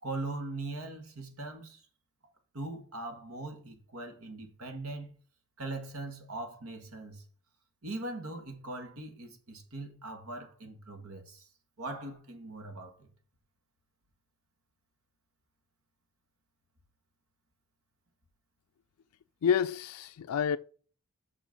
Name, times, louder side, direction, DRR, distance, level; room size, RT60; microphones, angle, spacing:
voice 1, 0.0-1.8 2.5-5.1 5.6-7.2 7.8-11.5 11.8-13.1, right 2 dB, 70° right, 1.8 m, -40 dB
voice 2, 19.4-20.6, left 7 dB, 80° left, 0.4 m, -28 dB
6.2 x 6.1 x 5.3 m
head